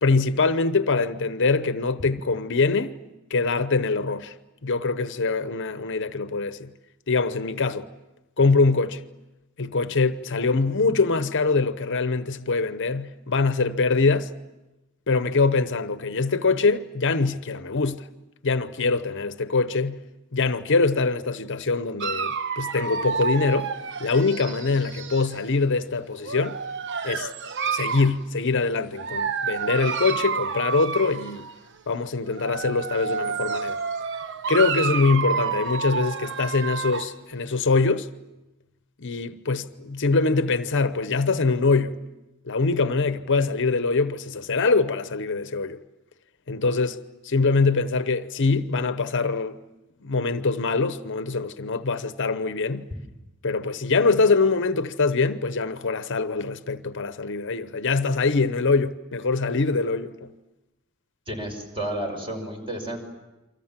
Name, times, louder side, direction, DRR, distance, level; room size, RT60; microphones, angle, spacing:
voice 1, 0.0-3.0 3.3-4.3 4.6-6.7 7.1-7.9 8.4-9.0 9.6-14.3 15.1-18.0 18.4-20.0 20.3-23.7 24.0-26.6 27.0-27.3 27.7-31.5 31.9-33.8 34.5-38.1 39.0-42.0 42.5-45.8 46.5-47.0 47.2-49.6 50.0-52.9 53.4-60.3, left 4 dB, 60° left, 0.9 m, -23 dB
Dog, 22.0-25.4 26.2-28.2 29.0-31.6 32.3-37.2, right 6 dB, 55° right, 1.1 m, -29 dB
voice 2, 61.3-63.0, right 1 dB, 25° right, 5.8 m, -31 dB
29.0 x 25.0 x 7.4 m
head